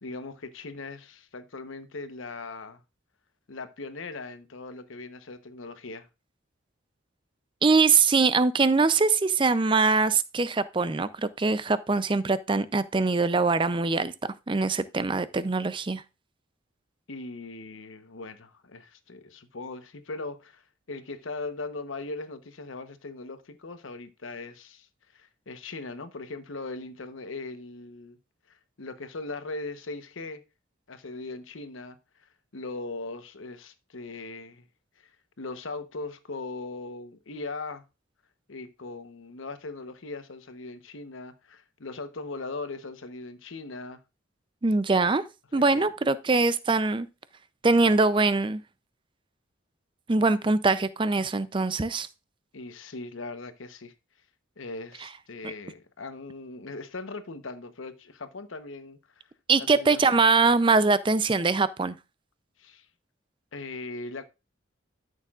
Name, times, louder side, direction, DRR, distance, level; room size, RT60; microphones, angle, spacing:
voice 1, 0.0-2.8 3.5-6.1 17.1-20.6 20.9-24.9 25.1-28.2 28.5-30.4 30.9-34.7 35.0-35.1 35.4-37.8 38.5-44.0 45.5-45.9 52.5-53.9 54.6-59.3 59.6-60.2 62.6-62.9 63.5-64.2, left 3 dB, 80° left, 0.9 m, -39 dB
voice 2, 7.6-14.1 14.5-16.0 44.6-45.2 45.5-47.1 47.6-48.6 50.1-52.1 55.4-55.5 59.5-61.9, right 4 dB, 25° right, 0.4 m, -23 dB
12.5 x 6.6 x 2.4 m
head